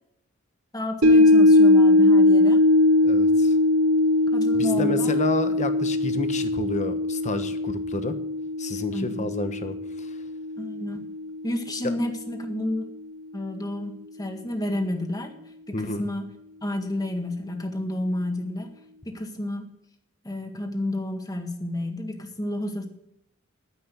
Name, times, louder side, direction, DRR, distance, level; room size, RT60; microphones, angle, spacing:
voice 1, 0.7-2.6 4.3-5.2 8.9-9.2 10.6-11.1 11.4-12.9 13.3-15.3 15.7-16.3 16.6-18.7 19.0-19.7 20.2-22.9, left 1 dB, 20° left, 4 dB, 1.8 m, -30 dB
sound 1, 1.0-11.4 11.8-11.9, left 2 dB, 65° right, 3.3 m, -20 dB
voice 2, 3.0-3.5 4.5-8.1 8.6-10.2 15.7-16.0, left 2 dB, 35° left, 9 dB, 1.2 m, -30 dB
10.5 x 10.0 x 7.0 m, 0.78 s
head